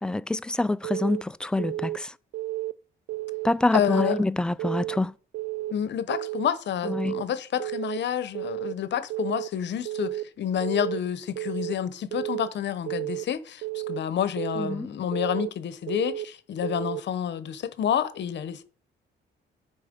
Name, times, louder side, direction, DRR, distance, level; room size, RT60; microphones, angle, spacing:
voice 1, 0.0-2.1 3.4-5.1 6.8-7.2 14.6-14.9, left 2 dB, 5° left, 0.3 m, -26 dB
Keyboard (musical) / Alarm, 0.8-1.2 1.6-2.0 2.3-2.7 3.1-3.5 3.8-4.2 4.6-5.0 5.3-5.7 6.1-6.5 6.8-7.2 7.6-8.0 8.3-8.7 9.1-9.5 9.9-10.2 10.6-11.0 11.4-11.7 12.1-12.5 12.9-13.2 13.6-14.0 14.4-14.7 15.1-15.5 15.9-16.3 16.6-17.0, right 16 dB, 75° right, 0.4 m, -32 dB
voice 2, 3.7-4.2 5.7-18.6, left 9 dB, 65° left, 0.9 m, -29 dB
9.8 x 4.3 x 5.2 m
cardioid pair, 90°, 20 cm